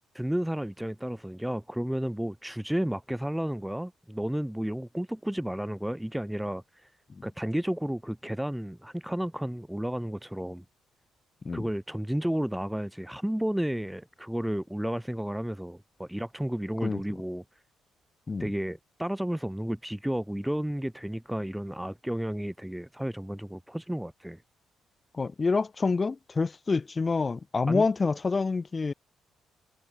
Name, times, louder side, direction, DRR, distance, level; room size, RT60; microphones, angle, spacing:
voice 1, 0.1-6.9 7.2-10.6 11.5-17.4 18.4-24.4 27.7-27.9, equal, 5° right, 0.7 m, -32 dB
voice 2, 25.1-28.9, left 4 dB, 30° left, 1.4 m, -27 dB
cardioid pair, 90°, 0 cm